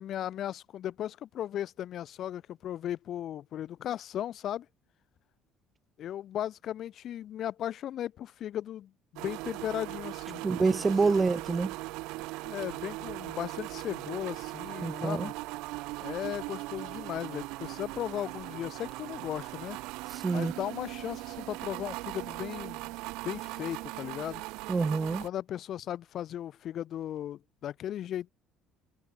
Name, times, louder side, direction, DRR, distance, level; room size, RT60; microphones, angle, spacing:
voice 1, 0.0-4.7 6.0-10.8 12.4-15.3 16.0-19.8 20.3-23.0 23.2-24.4 25.2-28.3, left 11 dB, 50° left, 0.6 m, -36 dB
sound 1, 9.2-25.3, right 22 dB, 85° right, 2.7 m, -39 dB
voice 2, 10.4-11.8 14.8-15.3 20.1-20.5 24.7-25.2, right 4 dB, 20° right, 0.3 m, -27 dB
cardioid pair, 145°, 0 cm